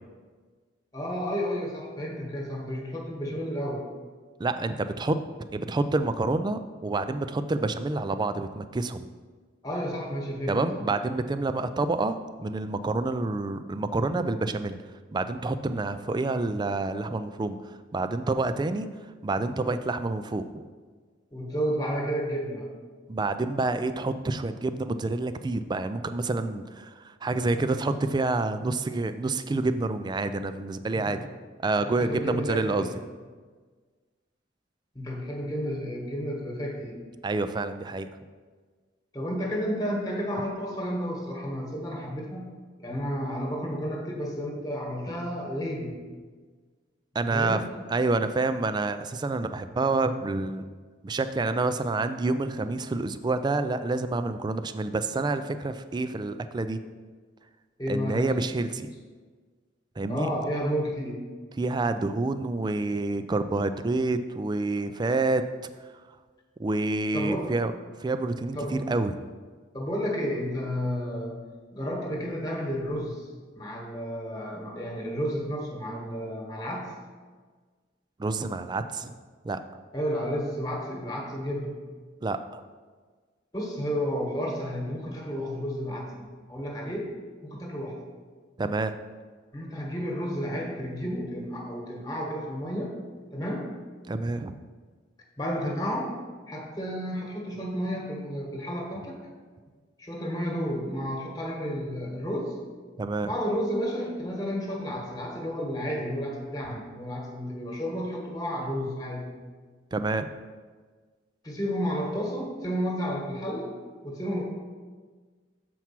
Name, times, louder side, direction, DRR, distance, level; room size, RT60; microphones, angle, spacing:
voice 1, 0.9-3.8 9.6-10.9 21.3-22.7 30.9-31.2 31.8-32.9 34.9-37.0 39.1-42.5 42.8-46.0 47.2-47.6 57.8-58.3 60.1-61.2 67.1-67.5 68.5-68.9 69.7-71.4 71.7-73.2 73.5-76.9 79.9-81.8 83.5-87.1 87.4-88.0 89.5-92.9 93.3-93.7 95.4-96.1 96.5-99.2 100.0-102.5 103.2-109.3 111.4-113.7 114.0-114.4, equal, 20° left, 0 dB, 1.3 m, -31 dB
voice 2, 4.4-5.2 5.5-9.0 10.5-14.8 15.1-17.6 17.9-18.9 19.2-20.4 23.1-31.3 31.6-32.9 37.2-38.1 47.1-47.6 47.9-50.7 51.0-56.8 57.9-58.9 60.0-60.3 61.6-65.4 66.6-67.7 68.0-69.2 78.2-79.1 79.4-79.6 82.2-82.6 88.6-89.0 94.1-94.6 103.0-103.3 109.9-110.3, right 3 dB, 25° right, 10 dB, 0.3 m, -28 dB
7.1 x 4.6 x 5.8 m, 1.5 s
head